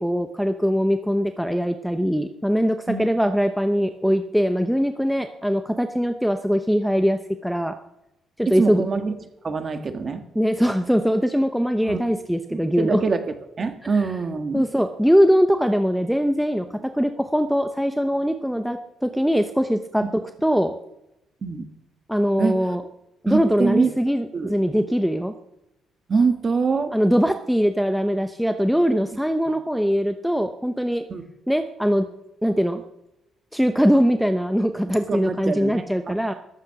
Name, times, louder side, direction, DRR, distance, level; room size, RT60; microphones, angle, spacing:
voice 1, 0.0-7.8 8.4-8.8 10.3-13.0 13.8-14.1 14.5-20.7 22.1-22.8 23.2-25.3 26.9-31.0 31.5-32.1 32.4-32.8 33.5-36.3, equal, ahead, 7 dB, 0.7 m, -22 dB
voice 2, 8.5-9.1 9.4-10.2 11.8-12.0 12.5-13.2 13.6-14.7 21.4-21.6 22.4-22.6 23.3-23.9 24.3-24.5 26.1-27.0 29.5-29.6 31.1-31.2 35.1-36.2, right 4 dB, 30° right, 8 dB, 1.6 m, -24 dB
14.5 x 13.0 x 5.9 m, 0.87 s
cardioid pair, 165°, 0 cm